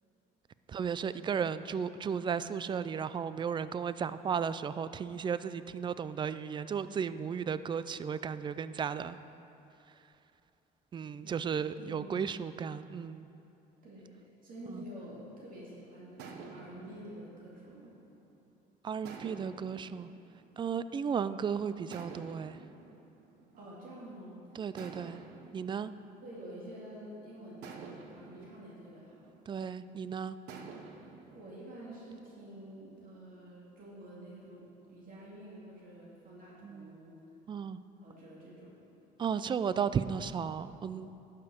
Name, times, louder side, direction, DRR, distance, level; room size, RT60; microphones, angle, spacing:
voice 1, 0.7-9.2 10.9-13.3 14.7-14.8 18.8-20.1 20.6-22.6 24.6-25.2 25.5-25.9 29.5-30.4 36.6-36.9 37.5-37.8 39.2-41.2, right 7 dB, 30° right, 14 dB, 0.3 m, -34 dB
voice 2, 11.2-12.3 13.8-17.9 23.6-24.7 26.2-29.2 31.3-37.2 38.0-38.8, right 1 dB, 55° right, -6 dB, 2.5 m, -48 dB
sound 1, 15.0-15.6 16.2-18.5 19.1-21.2 21.9-24.2 24.8-27.0 27.6-29.9 30.5-32.7, right 4 dB, 90° right, 0.9 m, -51 dB
11.5 x 6.7 x 5.4 m, 2.8 s
cardioid pair, 110°, 17 cm